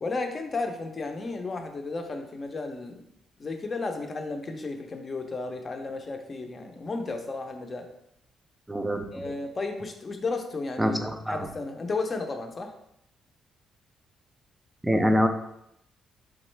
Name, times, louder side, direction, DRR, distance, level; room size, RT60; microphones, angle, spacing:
voice 1, 0.0-3.0 3.4-7.9 9.1-11.0 11.3-12.7, left 3 dB, 35° left, 4 dB, 0.6 m, -33 dB
voice 2, 8.7-9.0 10.8-11.5 14.8-15.3, equal, 10° right, 6 dB, 0.4 m, -24 dB
3.7 x 3.0 x 3.2 m, 0.78 s
cardioid pair, 90°, 0 cm